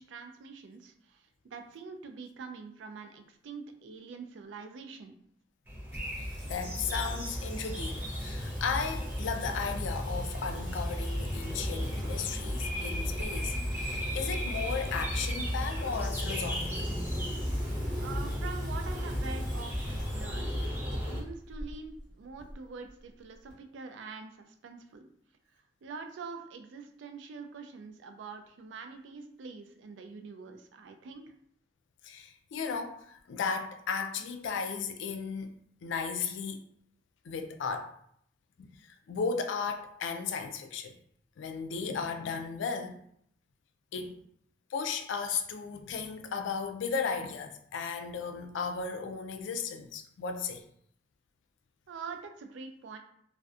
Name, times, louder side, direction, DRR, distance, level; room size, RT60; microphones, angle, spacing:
voice 1, 0.0-5.2 18.0-25.1 25.8-31.3 51.9-53.0, right 5 dB, 85° right, 0.3 m, -45 dB
sound 1, 5.7-21.2, equal, 10° right, 0.5 m, -34 dB
Singing, 5.9-23.5, equal, 5° left, 0.9 m, -48 dB
voice 2, 6.2-16.9 32.0-35.5 35.8-36.6 37.3-37.9 38.6-38.7 39.1-41.0 41.4-43.0 43.9-44.2 44.7-50.6, left 5 dB, 90° left, 0.3 m, -35 dB
2.5 x 2.1 x 2.4 m
head